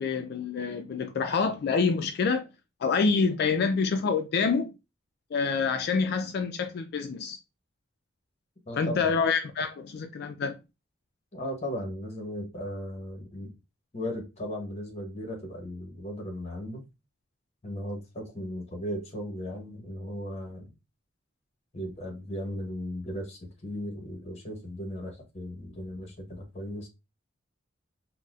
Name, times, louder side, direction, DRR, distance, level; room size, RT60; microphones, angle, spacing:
voice 1, 0.0-2.5 2.8-4.7 5.3-7.4 8.8-10.5, left 5 dB, 55° left, 0.3 m, -27 dB
voice 2, 8.7-9.1 11.3-13.5 13.9-16.8 17.6-20.7 21.7-26.9, equal, 35° left, 0.9 m, -36 dB
4.0 x 2.1 x 2.3 m
head